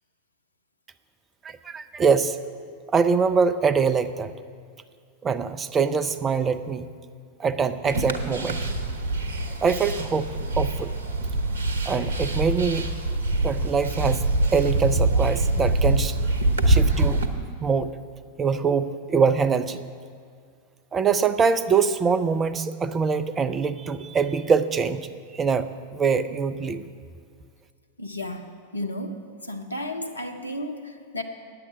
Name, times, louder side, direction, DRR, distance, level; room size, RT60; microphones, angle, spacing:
voice 1, 1.4-2.4 2.9-4.3 5.2-6.9 7.4-8.7 9.6-10.3 10.5-10.9 11.9-12.9 13.4-16.2 16.7-17.2 17.6-18.0 18.4-19.8 20.9-25.1 25.3-26.8, right 5 dB, 20° right, 11 dB, 0.5 m, -23 dB
sound 1, 7.8-17.3, right 2 dB, 65° right, 0.9 m, -24 dB
voice 2, 28.0-31.2, left 1 dB, 80° left, 5 dB, 0.8 m, -33 dB
9.8 x 7.8 x 7.5 m, 2.1 s
figure-of-eight pair, 90°, 0 cm